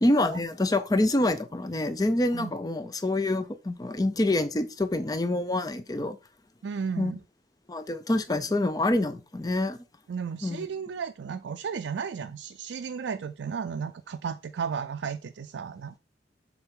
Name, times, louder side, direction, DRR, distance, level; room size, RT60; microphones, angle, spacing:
voice 1, 0.0-6.2 7.0-7.1 7.7-9.8 10.4-10.7, left 1 dB, 20° left, 0.5 m, -26 dB
voice 2, 6.6-7.2 10.1-16.0, right 6 dB, 80° right, 0.4 m, -34 dB
7.0 x 3.9 x 3.7 m
head